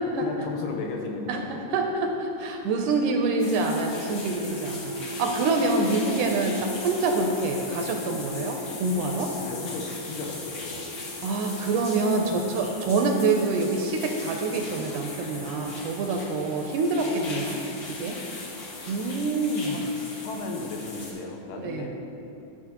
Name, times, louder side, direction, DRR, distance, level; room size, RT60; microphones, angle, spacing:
voice 1, 0.2-1.6 3.0-3.2 9.3-10.9 19.6-19.8 20.2-21.9, left 3 dB, 90° left, 1 dB, 2.6 m, -35 dB
voice 2, 1.7-9.3 11.2-17.6 17.9-18.2 18.9-19.8 21.6-21.9, right 3 dB, 80° right, 3 dB, 1.9 m, -26 dB
sound 1, 3.4-21.1, left 2 dB, 70° left, 1.1 m, -39 dB
sound 2, 4.5-16.4, left 2 dB, 50° left, 0.7 m, -41 dB
13.0 x 6.4 x 2.9 m, 2.9 s
omnidirectional pair, 4.0 m